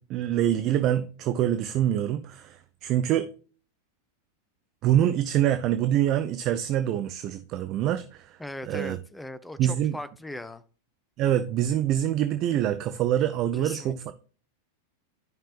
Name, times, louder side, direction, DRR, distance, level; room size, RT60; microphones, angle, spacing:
voice 1, 0.0-3.3 4.8-8.4 8.6-9.0 9.6-10.0 11.2-14.1, right 11 dB, 35° right, 0.5 m, -25 dB
voice 2, 8.4-10.6 13.6-14.1, left 1 dB, 5° left, 0.6 m, -39 dB
12.5 x 5.5 x 2.4 m
figure-of-eight pair, 90°, 0 cm